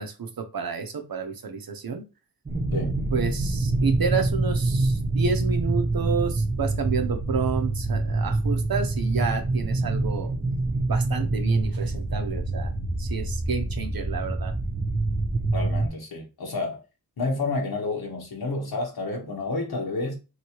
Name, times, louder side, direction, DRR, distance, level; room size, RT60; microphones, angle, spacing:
voice 1, 0.0-2.0 3.1-10.3 10.9-12.7 13.0-14.5, right 5 dB, 65° right, 0.7 m, -30 dB
sound 1, 2.5-15.9, right 2 dB, 20° right, 0.8 m, -26 dB
voice 2, 15.5-16.8 17.2-20.2, left 3 dB, 70° left, 1.1 m, -30 dB
3.0 x 2.8 x 2.9 m
cardioid pair, 55°, 39 cm